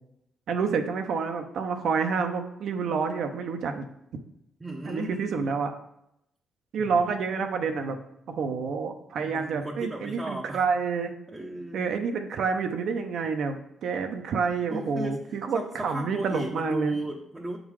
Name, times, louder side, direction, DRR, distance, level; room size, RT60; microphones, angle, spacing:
voice 1, 0.5-3.8 4.9-5.7 6.7-8.0 8.3-11.1 11.7-17.0, right 5 dB, 70° right, 5 dB, 0.7 m, -28 dB
voice 2, 4.6-5.5 6.8-7.1 9.3-10.6 11.3-11.8 14.7-17.6, right 1 dB, 20° right, 0 dB, 0.7 m, -35 dB
7.2 x 3.8 x 4.7 m, 0.81 s
cardioid pair, 90°, 0 cm